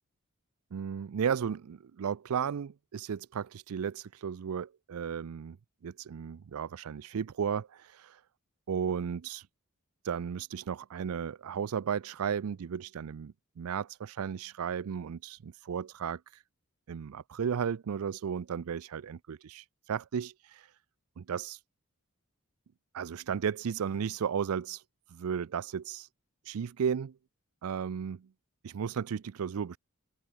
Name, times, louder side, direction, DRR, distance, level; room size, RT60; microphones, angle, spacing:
voice 1, 0.7-5.6 5.8-8.2 8.7-9.4 10.0-16.2 16.9-20.7 21.2-21.6 22.9-24.8 25.1-26.1 26.5-27.2 27.6-28.3 28.6-29.8, right 7 dB, 75° right, 0.4 m, -34 dB
head